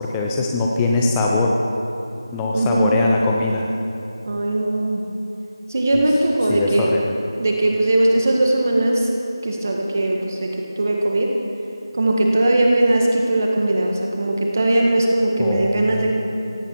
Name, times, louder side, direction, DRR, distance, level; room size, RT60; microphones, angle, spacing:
voice 1, 0.0-1.6 2.3-3.7 5.9-6.0 6.5-7.1 15.4-16.0, left 3 dB, 10° left, -1 dB, 0.6 m, -21 dB
voice 2, 2.5-3.0 4.3-5.0 5.7-6.9 7.4-9.1 9.4-10.5 10.8-11.3 11.9-16.1, right 1 dB, 40° right, 0 dB, 1.7 m, -19 dB
17.5 x 16.5 x 4.7 m, 2.7 s
figure-of-eight pair, 170°, 2 cm